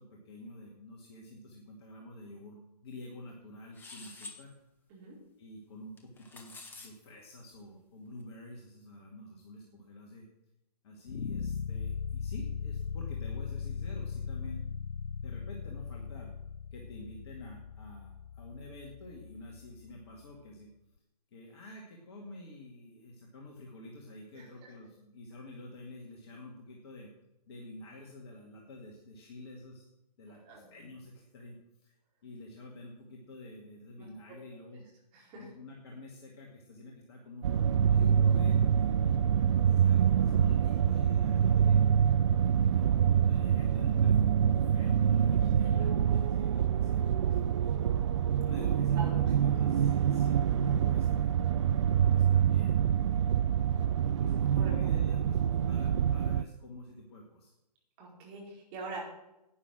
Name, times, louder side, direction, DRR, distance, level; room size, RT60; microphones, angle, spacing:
voice 1, 0.0-4.5 5.4-10.3 10.8-14.6 15.2-16.3 16.7-20.7 21.3-27.1 27.5-29.9 30.2-32.0 32.2-34.9 35.3-37.6 37.8-38.6 39.7-42.0 42.6-47.9 48.4-51.3 52.1-53.0 53.5-57.5, left 1 dB, 40° left, -1 dB, 2.2 m, -48 dB
sound 1, 3.7-4.4 6.0-6.9, left 3 dB, 10° left, 1.5 m, -47 dB
sound 2, 11.1-20.2, left 6 dB, 85° left, 0.4 m, -39 dB
voice 2, 24.3-24.7 30.4-30.7 34.0-34.1 35.1-35.5 45.6-45.8 48.9-49.1 54.6-54.7 58.0-59.1, right 3 dB, 25° right, -2 dB, 4.6 m, -44 dB
sound 3, 37.4-56.4, right 8 dB, 45° right, 0.4 m, -26 dB
11.0 x 9.6 x 6.2 m, 0.91 s
figure-of-eight pair, 130°, 21 cm